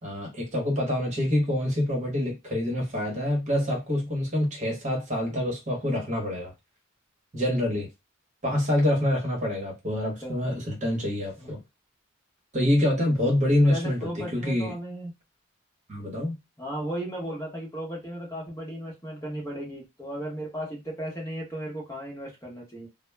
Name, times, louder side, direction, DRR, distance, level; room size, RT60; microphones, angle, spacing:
voice 1, 0.0-6.5 7.3-7.9 8.4-11.6 12.5-14.7 15.9-16.4, left 1 dB, 35° right, 0.9 m, -26 dB
voice 2, 10.2-10.5 11.4-11.5 13.6-15.1 16.6-22.9, right 1 dB, 15° left, 0.8 m, -35 dB
2.1 x 2.0 x 3.2 m
head